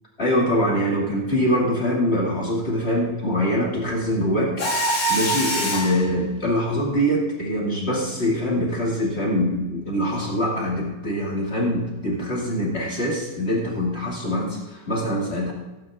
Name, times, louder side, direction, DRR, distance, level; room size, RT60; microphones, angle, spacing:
voice 1, 0.2-15.5, equal, 35° left, -4 dB, 2.6 m, -24 dB
Mechanisms, 4.6-6.0, equal, 85° left, 3.0 m, -23 dB
16.5 x 9.3 x 3.6 m, 1.1 s
omnidirectional pair, 2.0 m